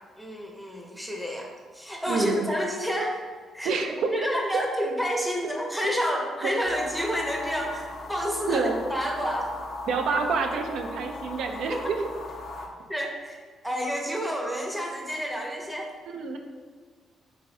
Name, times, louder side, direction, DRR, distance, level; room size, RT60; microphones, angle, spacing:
voice 1, 0.2-3.2 3.5-9.5 11.7-11.9 12.9-15.9, equal, ahead, 0 dB, 0.6 m, -29 dB
voice 2, 2.1-2.5 3.6-4.0 4.5-4.6 6.4-6.5 8.5-8.8 9.9-12.0 16.1-16.4, right 4 dB, 75° right, 4 dB, 0.4 m, -28 dB
sound 1, 6.6-12.7, left 2 dB, 60° left, 0.5 m, -38 dB
3.3 x 2.6 x 3.2 m, 1.5 s
cardioid pair, 90°, 0 cm